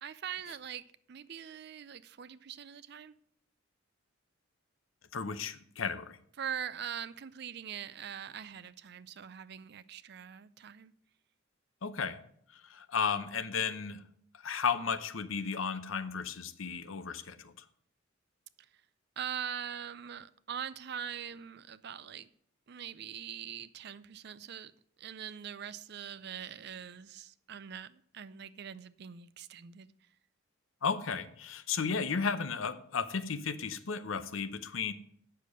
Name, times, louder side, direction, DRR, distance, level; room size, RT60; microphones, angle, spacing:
voice 1, 0.0-3.1 6.4-10.9 19.2-22.3 22.7-24.7 25.0-29.9, right 8 dB, 55° right, 16 dB, 0.4 m, -42 dB
voice 2, 5.1-6.2 11.8-12.2 12.7-14.0 14.4-17.5 30.8-34.9, left 6 dB, 85° left, 12 dB, 0.7 m, -34 dB
8.4 x 6.8 x 6.3 m, 0.66 s
head